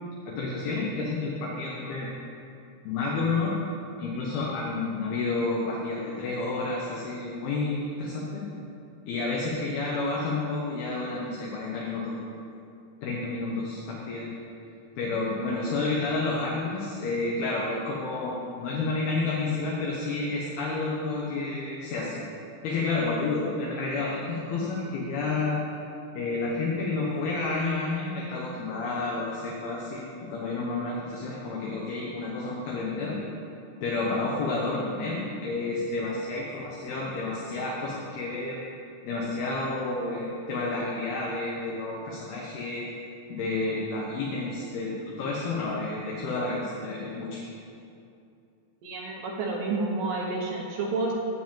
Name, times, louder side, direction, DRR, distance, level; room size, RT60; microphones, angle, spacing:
voice 1, 0.3-2.1 2.8-3.5 4.0-8.4 9.1-12.1 13.0-14.3 15.0-22.2 22.6-25.6 26.1-33.2 33.8-38.6 39.0-42.8 43.3-47.4, left 3 dB, 70° left, -4 dB, 2.9 m, -30 dB
voice 2, 48.8-51.1, right 3 dB, 70° right, -1 dB, 2.1 m, -30 dB
12.0 x 5.1 x 8.7 m, 2.6 s
omnidirectional pair, 5.0 m